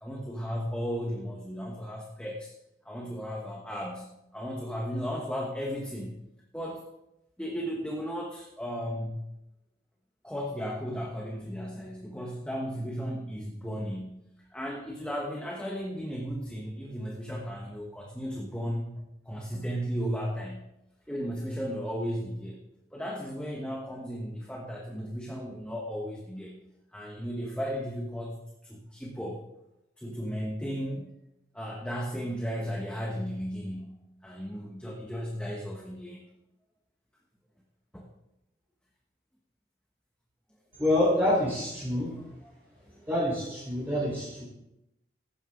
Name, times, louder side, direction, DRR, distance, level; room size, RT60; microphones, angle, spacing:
voice 1, 0.0-2.5 2.8-4.1 4.3-6.2 6.5-6.8 7.4-9.2 10.2-20.6 21.1-22.6 22.9-26.6 26.9-29.4 30.0-31.1 31.5-36.3 37.9-38.1 42.8-43.0, equal, 5° left, -1 dB, 1.3 m, -35 dB
voice 2, 40.8-42.1 43.1-44.4, left 1 dB, 10° right, -8 dB, 4.3 m, -26 dB
15.5 x 11.5 x 3.8 m, 0.88 s
head